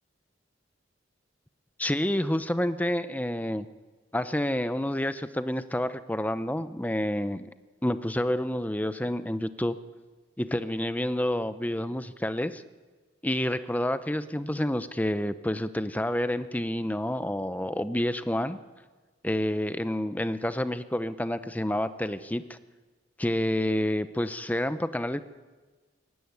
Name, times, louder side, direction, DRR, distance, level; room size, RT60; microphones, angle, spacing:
voice 1, 1.8-3.7 4.1-7.5 7.8-9.7 10.4-12.6 13.2-18.6 19.2-22.6 23.2-25.2, left 1 dB, 10° left, 12 dB, 0.7 m, -29 dB
21.5 x 17.0 x 9.6 m, 1.3 s
head